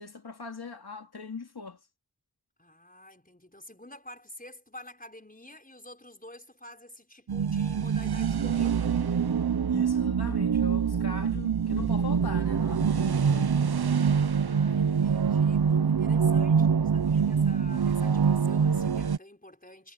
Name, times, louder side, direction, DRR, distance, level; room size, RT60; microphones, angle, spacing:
voice 1, 0.0-1.8 9.7-13.6, left 4 dB, 90° left, 2.5 m, -40 dB
voice 2, 2.6-9.0 14.0-19.9, left 1 dB, 20° left, 5.3 m, -49 dB
sound 1, 7.3-19.2, right 6 dB, 80° right, 0.8 m, -25 dB
wide cardioid pair, 45°, 37 cm